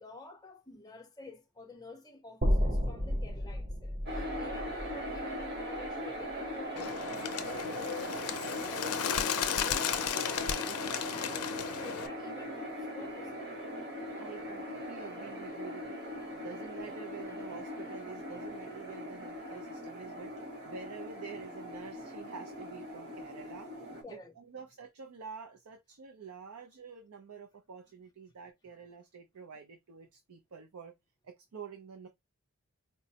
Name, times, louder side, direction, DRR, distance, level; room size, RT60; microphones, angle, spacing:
voice 1, 0.0-13.4 24.0-24.3, left 3 dB, 15° left, 0.6 m, -50 dB
sound 1, 2.4-6.6, equal, 30° right, 0.7 m, -33 dB
sound 2, 4.1-24.0, equal, 50° right, 1.2 m, -40 dB
Bird, 6.8-12.1, left 8 dB, 80° left, 0.4 m, -34 dB
voice 2, 14.2-16.0 16.3-20.3 20.6-23.7 24.1-30.9 31.2-32.1, right 6 dB, 75° right, 0.5 m, -48 dB
4.5 x 2.0 x 2.7 m
head